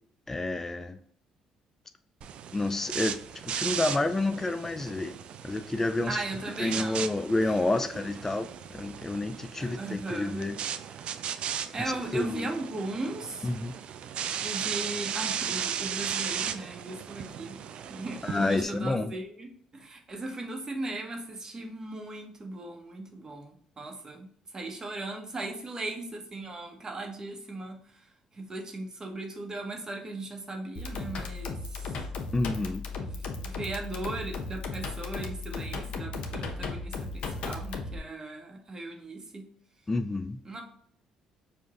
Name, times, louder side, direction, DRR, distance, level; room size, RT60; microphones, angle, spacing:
voice 1, 0.3-1.0 2.5-5.2 5.4-6.2 6.6-10.6 12.1-12.5 13.4-13.7 18.2-19.1 32.3-32.8 39.9-40.4, left 2 dB, 20° left, 0.3 m, -29 dB
sound 1, 2.2-18.6, right 8 dB, 60° right, 0.3 m, -36 dB
voice 2, 6.1-7.1 7.4-7.5 9.5-10.4 11.7-13.5 14.4-17.6 17.9-19.5 19.7-27.8 28.3-32.0 33.0-39.5 40.4-40.6, right 2 dB, 30° right, 1.1 m, -38 dB
sound 2, 30.8-38.0, left 3 dB, 60° left, 0.8 m, -36 dB
4.9 x 2.5 x 3.6 m
supercardioid pair, 70°, 2 cm